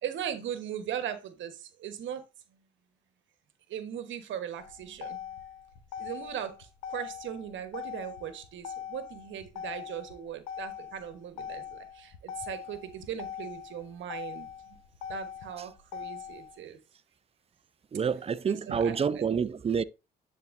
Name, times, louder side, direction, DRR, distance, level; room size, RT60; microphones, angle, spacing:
voice 1, 0.0-2.2 3.7-5.2 6.0-14.8 15.1-16.8 18.4-19.0 19.3-19.4, right 9 dB, 65° right, 1.2 m, -39 dB
Motor vehicle (road), 4.6-16.6, left 9 dB, 90° left, 0.9 m, -42 dB
voice 2, 17.9-19.8, right 6 dB, 30° right, 0.5 m, -28 dB
10.5 x 4.2 x 2.6 m
hypercardioid pair, 55°, 21 cm